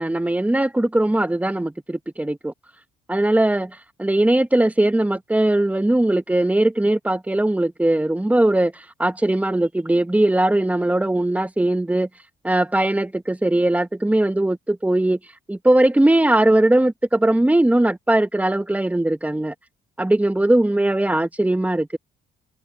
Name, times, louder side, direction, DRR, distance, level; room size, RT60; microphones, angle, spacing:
voice 1, 0.0-2.5 3.1-12.1 12.4-15.2 15.5-19.5 20.0-22.0, right 1 dB, 5° right, 1.1 m, -19 dB
cardioid pair, 90°, 20 cm